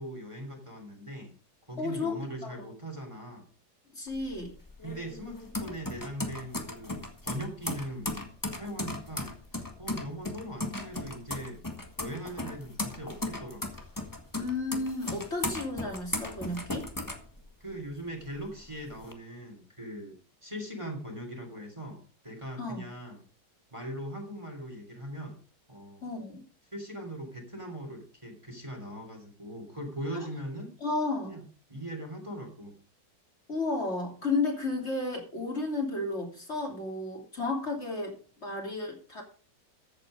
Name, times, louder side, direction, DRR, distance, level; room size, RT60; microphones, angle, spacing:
voice 1, 0.0-1.3 1.7-3.5 4.8-8.1 8.5-11.7 12.0-13.8 17.6-20.2 20.4-23.2 23.7-25.4 25.7-26.1 26.7-30.7 31.2-31.4 31.7-32.8, right 1 dB, 15° right, 2 dB, 3.1 m, -40 dB
voice 2, 1.8-2.7 3.9-4.5 14.4-16.9 22.6-22.9 26.0-26.4 30.1-30.3 30.8-31.4 33.5-38.2 38.4-39.2, left 3 dB, 35° left, 1 dB, 3.3 m, -33 dB
sound 1, 4.1-17.9 18.3-19.1, left 2 dB, 10° left, 1.6 m, -37 dB
14.5 x 8.3 x 4.9 m, 0.39 s
omnidirectional pair, 1.9 m